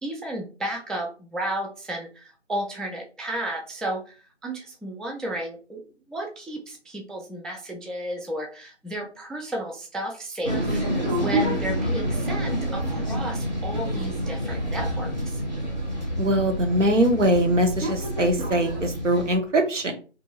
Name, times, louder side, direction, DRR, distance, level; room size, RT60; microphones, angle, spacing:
voice 1, 0.0-5.8 6.1-15.4, right 1 dB, ahead, 1 dB, 0.3 m, -33 dB
sound 1, 10.4-19.4, equal, 40° right, 0.7 m, -28 dB
voice 2, 16.2-19.9, right 1 dB, 80° right, 4 dB, 0.8 m, -22 dB
2.6 x 2.3 x 2.7 m, 0.36 s
figure-of-eight pair, 165°, 36 cm